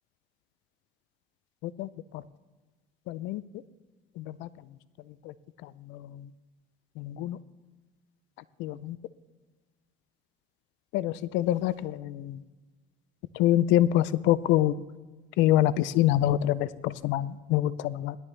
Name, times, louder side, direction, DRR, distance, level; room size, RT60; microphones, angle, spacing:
voice 1, 1.6-2.2 3.1-3.4 4.2-4.5 5.2-5.3 5.6-6.3 7.0-7.4 8.6-9.0 10.9-12.4 13.3-14.8 15.4-18.2, left 13 dB, 85° left, 17 dB, 0.5 m, -26 dB
17.5 x 12.0 x 3.3 m, 1.3 s
cardioid pair, 105°, 19 cm